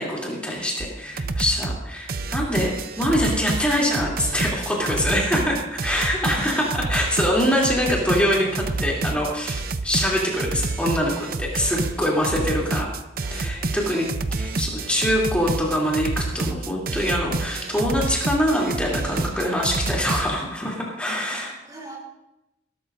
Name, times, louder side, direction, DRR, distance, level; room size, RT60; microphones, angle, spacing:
voice 1, 0.0-13.0 13.3-14.1 14.4-21.5, equal, 5° left, -4 dB, 3.0 m, -24 dB
sound 1, 0.8-0.9 1.2-1.8 2.1-20.3, right 3 dB, 50° right, 0.6 m, -28 dB
voice 2, 0.9-1.6 5.8-6.3 9.9-10.2 12.0-13.8 14.3-15.1 21.1-22.0, equal, 20° right, -1 dB, 3.6 m, -45 dB
20.5 x 12.5 x 2.6 m, 0.88 s
head